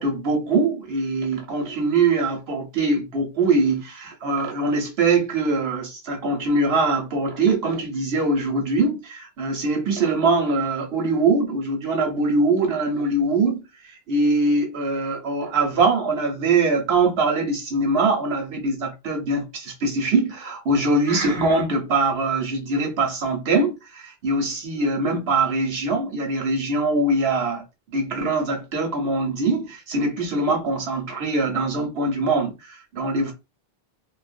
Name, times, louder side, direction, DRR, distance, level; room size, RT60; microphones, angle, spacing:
voice 1, 0.0-13.6 14.1-27.6 27.9-33.3, right 3 dB, 70° right, 1.0 m, -22 dB
2.4 x 2.1 x 2.4 m
omnidirectional pair, 1.1 m